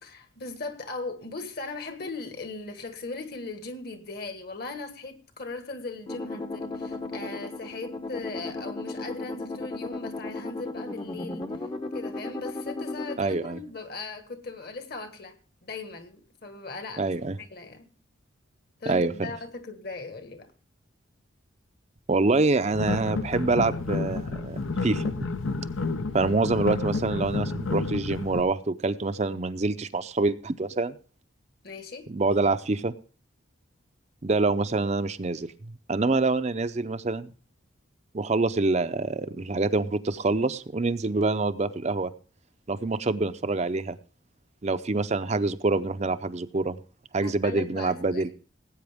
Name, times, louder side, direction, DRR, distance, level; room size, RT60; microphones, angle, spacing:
voice 1, 0.0-11.5 11.9-17.1 17.4-17.9 18.8-20.5 31.6-32.1 47.2-48.2, left 3 dB, 50° left, 1.6 m, -38 dB
sound 1, 6.1-13.2, left 2 dB, 25° left, 0.8 m, -35 dB
voice 2, 13.2-13.6 17.0-17.4 18.9-19.1 22.1-25.1 26.1-30.9 32.1-32.9 34.2-35.5 35.9-37.3 38.1-42.1 42.7-44.0 44.6-46.8 47.1-48.3, right 3 dB, 35° right, 0.5 m, -26 dB
sound 2, 22.7-28.4, left 3 dB, 75° left, 0.8 m, -30 dB
18.5 x 8.8 x 3.5 m
head